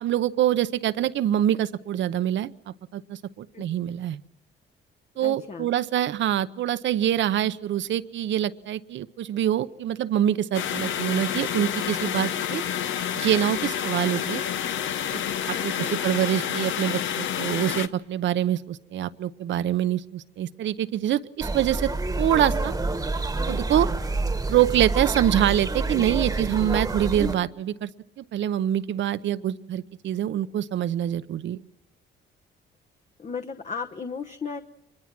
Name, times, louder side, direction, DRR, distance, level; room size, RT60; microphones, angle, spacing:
voice 1, 0.0-4.2 5.2-12.6 13.1-14.4 15.1-15.2 15.5-21.9 22.2-22.7 23.5-23.9 24.5-27.9 28.2-31.6, right 11 dB, 70° right, 15 dB, 0.8 m, -25 dB
voice 2, 5.2-5.7 15.5-16.0 33.2-34.6, left 5 dB, 35° left, 5 dB, 0.9 m, -35 dB
sound 1, 10.5-17.9, left 9 dB, 75° left, 0.9 m, -29 dB
sound 2, 21.4-27.4, right 3 dB, 15° right, 1.3 m, -27 dB
24.5 x 21.5 x 6.0 m, 0.93 s
cardioid pair, 90°, 20 cm